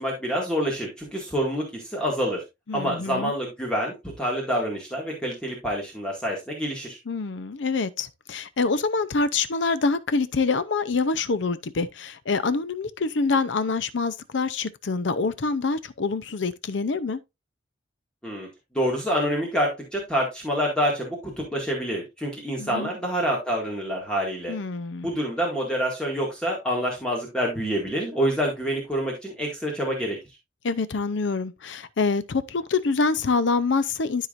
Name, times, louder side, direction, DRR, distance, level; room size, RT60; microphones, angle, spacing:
voice 1, 0.0-2.4 2.7-7.0 18.2-18.5 18.7-24.5 25.0-30.2, equal, 5° left, 2.0 m, -27 dB
voice 2, 2.7-3.3 7.1-17.2 22.6-22.9 24.5-25.1 30.6-34.3, left 4 dB, 75° left, 0.6 m, -26 dB
12.5 x 4.8 x 2.5 m
head